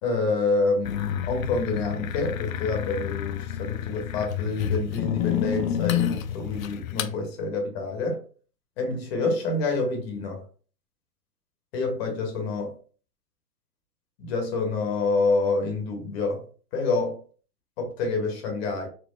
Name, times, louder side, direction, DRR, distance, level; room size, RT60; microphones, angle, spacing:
voice 1, 0.0-8.2 8.8-10.4 11.7-12.7 14.2-16.4 16.7-17.2 17.8-18.9, left 3 dB, 40° left, 3 dB, 1.1 m, -27 dB
sound 1, 0.8-7.1, left 9 dB, 55° left, 0.5 m, -29 dB
4.4 x 2.2 x 3.1 m, 0.41 s
hypercardioid pair, 125°, 49 cm